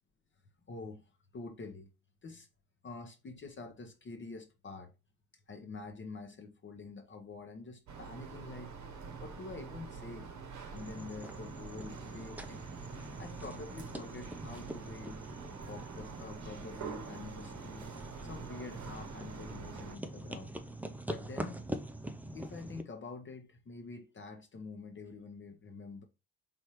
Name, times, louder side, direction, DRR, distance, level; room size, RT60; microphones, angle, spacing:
voice 1, 0.7-1.1 1.3-1.9 2.2-2.5 2.8-4.9 5.5-8.7 9.2-10.3 10.7-12.6 13.2-15.2 15.6-17.9 18.2-20.5 21.1-21.6 22.3-26.0, left 3 dB, 30° left, 0.8 m, -46 dB
sound 1, 7.9-20.0, right 5 dB, 45° right, 1.0 m, -46 dB
sound 2, 10.7-22.8, right 1 dB, 5° right, 0.5 m, -44 dB
4.3 x 3.4 x 3.0 m
hypercardioid pair, 55°, 42 cm